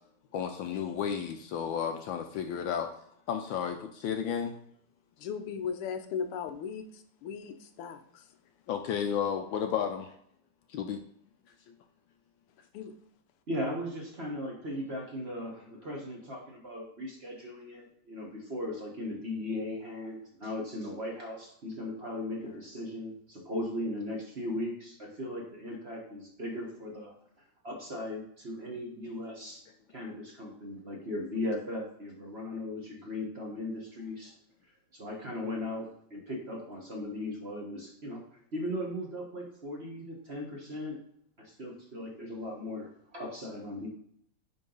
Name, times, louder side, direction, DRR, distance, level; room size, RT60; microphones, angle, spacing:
voice 1, 0.3-2.9 3.3-4.6 8.7-10.1 10.7-11.0 11.7-11.8, left 8 dB, 75° left, 1.2 m, -32 dB
voice 2, 5.2-8.3 12.7-12.9, left 6 dB, 90° left, 1.7 m, -37 dB
voice 3, 13.5-27.1 27.6-29.6 29.9-34.3 34.9-38.2 38.5-41.0 41.4-43.9, left 1 dB, 35° right, 1.3 m, -38 dB
9.8 x 3.7 x 3.9 m
omnidirectional pair, 2.4 m